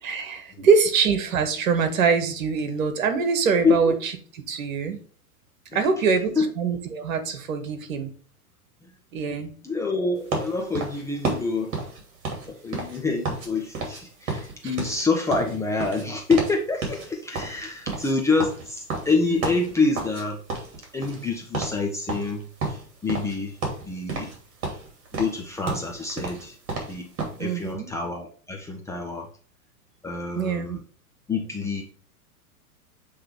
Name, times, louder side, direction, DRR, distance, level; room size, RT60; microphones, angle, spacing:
voice 1, 0.0-4.1 4.5-5.0 5.7-8.1 9.1-9.5 19.2-19.4 27.4-27.9 30.3-30.8, right 5 dB, 60° right, 8 dB, 1.5 m, -24 dB
voice 2, 9.6-11.7 12.5-20.4 20.9-23.5 23.9-24.3 25.2-26.5 26.9-27.1 27.4-29.3 30.0-30.8 31.3-31.8, left 4 dB, 5° left, 0 dB, 0.5 m, -26 dB
sound 1, 10.3-13.5 13.7-14.0 14.3-16.6 16.8-17.1 17.3-20.2 20.5-21.3 21.5-21.8 22.1-23.4 23.6-24.4 24.6-27.4, right 3 dB, 40° right, 2.8 m, -31 dB
7.6 x 3.3 x 4.6 m, 0.43 s
figure-of-eight pair, 100°, 45 cm